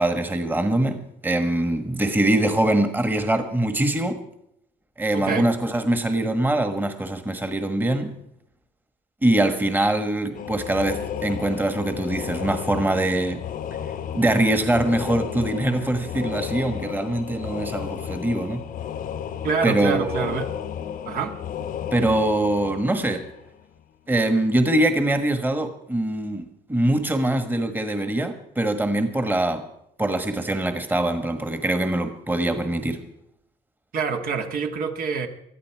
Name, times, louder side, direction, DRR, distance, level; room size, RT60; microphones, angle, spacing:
voice 1, 0.0-4.2 5.0-8.1 9.2-13.4 14.1-18.6 19.6-20.4 21.9-23.3 24.1-29.7 30.0-33.0, right 1 dB, 10° right, 1.5 m, -23 dB
voice 2, 5.1-5.5 19.4-20.5 21.0-21.3 33.9-35.3, right 5 dB, 60° right, 1.8 m, -26 dB
sound 1, 10.3-23.8, left 9 dB, 55° left, 0.9 m, -33 dB
20.0 x 13.5 x 4.7 m
cardioid pair, 110°, 17 cm